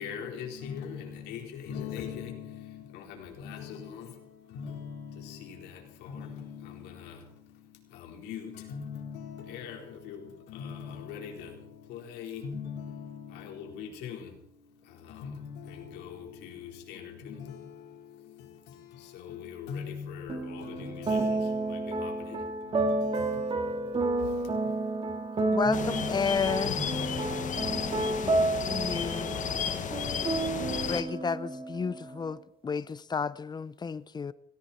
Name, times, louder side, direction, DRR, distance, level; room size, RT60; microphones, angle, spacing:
voice 1, 0.0-28.3, left 7 dB, 90° left, 4.2 m, -42 dB
voice 2, 20.3-26.7 27.2-32.3, right 2 dB, 35° right, 2.3 m, -31 dB
voice 3, 25.5-26.7 28.7-29.4 30.9-32.4 32.6-34.3, left 5 dB, 25° left, 0.7 m, -31 dB
sound 1, 25.7-31.0, left 8 dB, 50° left, 1.5 m, -33 dB
18.5 x 17.0 x 4.3 m
cardioid pair, 110°, 17 cm